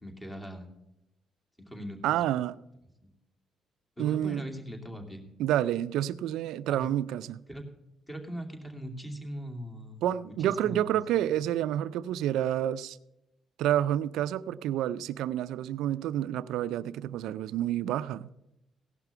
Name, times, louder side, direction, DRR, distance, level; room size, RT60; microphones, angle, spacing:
voice 1, 0.0-0.7 1.7-2.0 4.0-5.2 6.7-6.9 7.5-7.6 8.1-10.3 10.6-11.0, equal, 15° left, 2.5 m, -40 dB
voice 2, 2.0-2.6 4.0-4.4 5.4-7.4 10.0-13.0 13.6-18.3, right 11 dB, 90° right, 0.4 m, -29 dB
16.5 x 5.9 x 6.8 m
cardioid pair, 90°, 0 cm